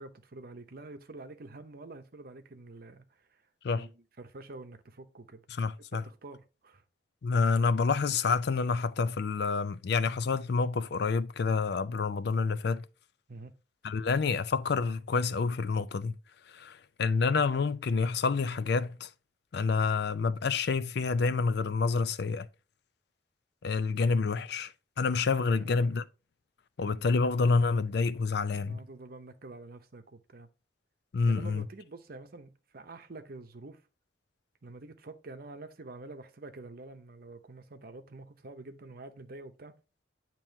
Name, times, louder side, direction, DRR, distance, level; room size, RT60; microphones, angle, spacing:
voice 1, 0.0-3.2 3.7-5.4 5.9-6.8 13.3-13.5 25.5-25.9 28.6-30.5 31.2-33.8 34.6-39.7, right 2 dB, 55° right, 0.8 m, -47 dB
voice 2, 5.5-6.0 7.2-12.8 13.8-16.2 16.5-19.1 19.5-22.5 23.6-24.7 25.0-26.1 26.8-28.8 31.1-31.6, left 4 dB, 65° left, 0.4 m, -28 dB
9.0 x 3.0 x 4.5 m
head